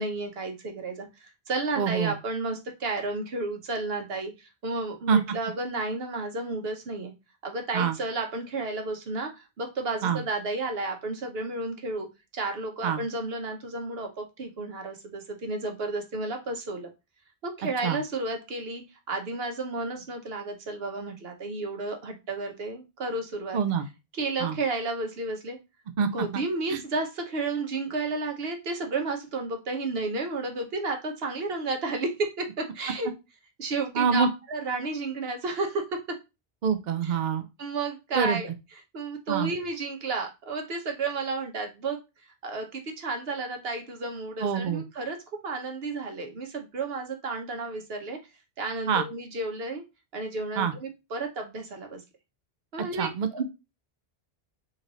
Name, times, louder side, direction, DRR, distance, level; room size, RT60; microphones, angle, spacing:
voice 1, 0.0-7.1 7.4-12.1 12.3-16.9 17.4-23.6 24.1-25.6 26.1-33.1 33.6-36.2 37.0-37.1 37.6-38.5 38.9-42.0 42.4-45.2 45.4-48.2 48.6-49.8 50.1-52.0 52.7-53.4, right 3 dB, 75° right, 4 dB, 1.2 m, -32 dB
voice 2, 1.8-2.1 5.1-5.2 7.7-8.0 10.0-10.2 12.8-13.0 17.8-18.0 23.5-23.9 24.4-24.6 26.0-26.4 26.7-26.8 33.9-34.3 36.6-37.5 38.1-38.4 39.3-39.5 44.4-44.8 48.9-49.0 50.6-50.7 53.0-53.4, right 7 dB, 55° right, 9 dB, 0.6 m, -26 dB
3.8 x 3.2 x 3.9 m, 0.26 s
omnidirectional pair, 1.0 m